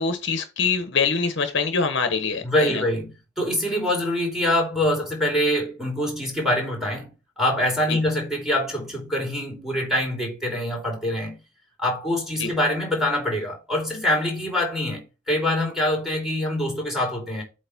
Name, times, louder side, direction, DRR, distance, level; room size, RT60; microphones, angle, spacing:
voice 1, 0.0-2.8 7.9-8.0 12.4-12.5, left 5 dB, 60° left, 1.1 m, -24 dB
voice 2, 2.4-3.1 3.4-7.1 7.4-11.4 11.8-17.4, left 1 dB, ahead, 3.0 m, -24 dB
8.1 x 3.2 x 6.0 m
head